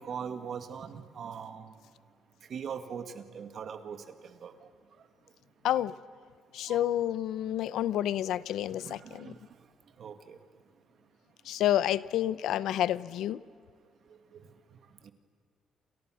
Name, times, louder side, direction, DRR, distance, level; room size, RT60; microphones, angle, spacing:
voice 1, 0.0-1.7 2.5-4.5 6.7-6.9 8.8-9.4 10.0-10.4 14.3-14.5 15.0-15.1, right 7 dB, 45° right, 9 dB, 1.9 m, -41 dB
voice 2, 6.5-9.3 11.4-13.4, left 12 dB, 75° left, 18 dB, 0.7 m, -29 dB
29.0 x 28.0 x 6.4 m, 2.1 s
cardioid pair, 170°, 0 cm